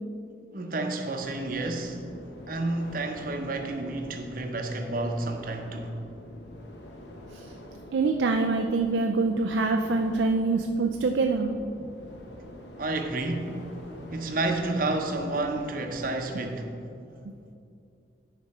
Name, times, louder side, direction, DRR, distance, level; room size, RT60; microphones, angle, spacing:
voice 1, 0.5-2.1 2.5-5.9 12.8-13.7 14.1-16.7, right 2 dB, 50° right, 4 dB, 0.7 m, -30 dB
sound 1, 1.4-16.2, left 1 dB, 70° left, 0.9 m, -46 dB
voice 2, 7.9-11.5, right 3 dB, 80° right, 4 dB, 0.4 m, -25 dB
10.0 x 5.1 x 4.2 m, 2.5 s
head